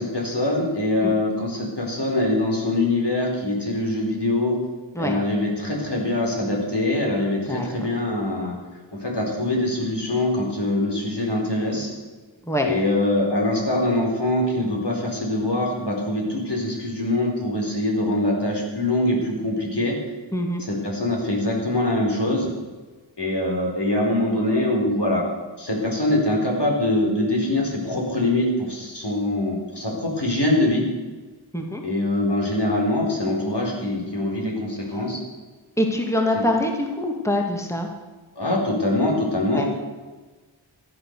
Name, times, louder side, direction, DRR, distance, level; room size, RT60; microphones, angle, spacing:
voice 1, 0.0-4.6 5.0-8.5 8.9-11.9 12.6-20.0 20.6-22.5 23.2-25.2 25.6-30.8 31.8-35.2 36.3-36.4 38.4-39.7, left 1 dB, 55° left, -1 dB, 4.5 m, -23 dB
voice 2, 31.5-31.8 35.8-37.9 39.5-39.6, left 1 dB, 5° left, 2 dB, 2.1 m, -24 dB
14.0 x 10.0 x 6.7 m, 1.3 s
wide cardioid pair, 40°, 48 cm